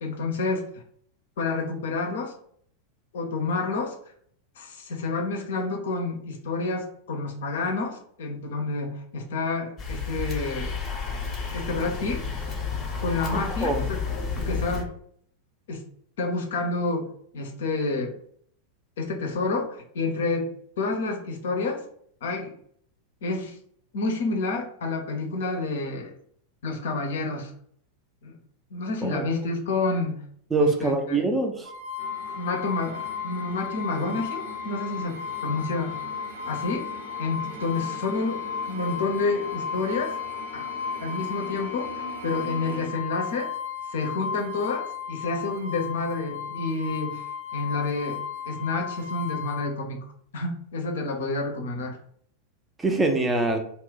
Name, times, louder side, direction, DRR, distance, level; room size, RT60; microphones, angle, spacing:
voice 1, 0.0-0.7 1.4-2.3 3.1-3.9 4.6-10.8 11.5-12.2 13.0-14.0 14.4-14.9 15.7-15.8 16.2-17.1 17.3-18.1 19.0-20.5 20.8-21.8 22.2-22.5 23.2-23.6 23.9-26.1 26.6-27.5 28.2-28.4 28.7-30.2 30.6-31.2 32.4-36.0 36.5-38.4 38.7-40.2 40.5-40.6 41.0-43.5 43.9-47.2 47.5-48.2 48.5-50.1 50.3-52.0, left 3 dB, 60° left, 2 dB, 0.6 m, -29 dB
sound 1, 9.8-14.8, left 5 dB, 25° left, 0.7 m, -31 dB
voice 2, 29.0-29.4 30.5-31.7 52.8-53.6, right 2 dB, 10° right, 4 dB, 0.5 m, -24 dB
sound 2, 31.7-49.7, left 7 dB, 55° right, 0.6 m, -35 dB
sound 3, 32.0-42.9, right 2 dB, 85° right, 0.8 m, -42 dB
2.4 x 2.0 x 3.7 m, 0.63 s
figure-of-eight pair, 90°, 0 cm